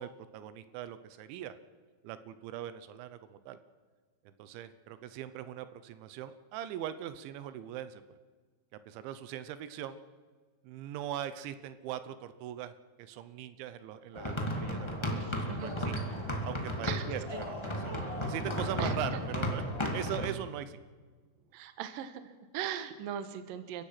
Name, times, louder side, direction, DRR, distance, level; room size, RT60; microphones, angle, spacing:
voice 1, 0.0-1.5 2.0-3.6 4.4-8.0 8.7-10.0 10.6-15.9 16.4-17.2 17.5-17.7 18.2-20.8, right 11 dB, 85° right, 12 dB, 3.2 m, -41 dB
sound 1, 14.1-20.3, equal, 40° left, 0.3 m, -34 dB
voice 2, 15.1-16.0 16.8-17.0 17.3-17.4 18.8-19.2 21.5-23.8, right 9 dB, 65° right, 9 dB, 2.5 m, -40 dB
30.0 x 15.5 x 5.9 m, 1.5 s
omnidirectional pair, 5.3 m